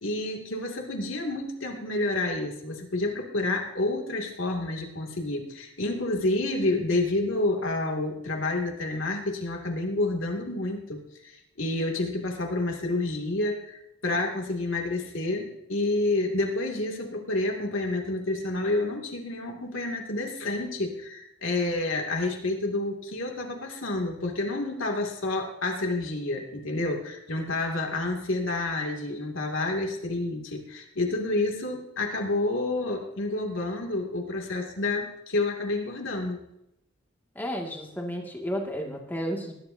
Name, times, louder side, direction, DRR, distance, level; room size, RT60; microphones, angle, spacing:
voice 1, 0.0-36.4, left 2 dB, 80° left, 1 dB, 2.5 m, -29 dB
voice 2, 37.4-39.5, equal, 10° left, 0 dB, 2.1 m, -32 dB
20.0 x 11.5 x 2.8 m, 0.81 s
head